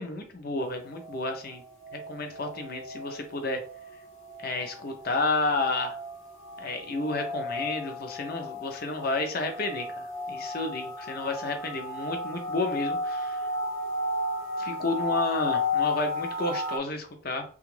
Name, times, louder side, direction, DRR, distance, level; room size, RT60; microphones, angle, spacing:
voice 1, 0.0-1.6 1.9-3.6 4.4-6.0 6.6-13.4 14.6-17.4, left 2 dB, 45° left, 5 dB, 0.6 m, -31 dB
sound 1, 0.6-16.8, left 2 dB, 80° left, 0.9 m, -34 dB
2.9 x 2.4 x 3.1 m, 0.42 s
head